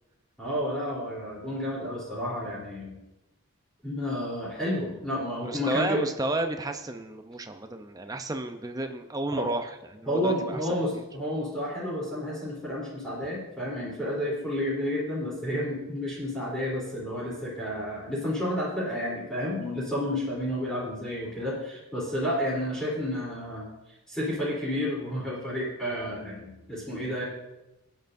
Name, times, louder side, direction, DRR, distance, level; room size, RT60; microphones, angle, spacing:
voice 1, 0.4-3.0 3.8-6.0 9.3-9.5 10.1-23.6 24.1-27.2, left 1 dB, 5° left, -7 dB, 3.5 m, -31 dB
voice 2, 5.4-10.6 10.9-11.0, right 2 dB, 15° right, 6 dB, 0.6 m, -32 dB
19.5 x 9.2 x 2.7 m, 0.97 s
head